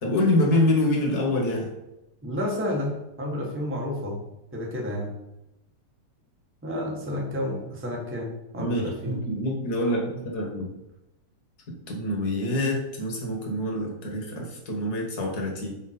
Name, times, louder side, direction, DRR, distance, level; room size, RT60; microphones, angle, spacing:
voice 1, 0.0-1.7 8.6-10.8 11.9-15.7, left 1 dB, 40° left, 1 dB, 1.6 m, -26 dB
voice 2, 2.2-4.2 4.5-5.1 6.6-9.2, left 1 dB, 15° right, -1 dB, 0.5 m, -30 dB
9.5 x 4.5 x 4.3 m, 0.89 s
omnidirectional pair, 3.3 m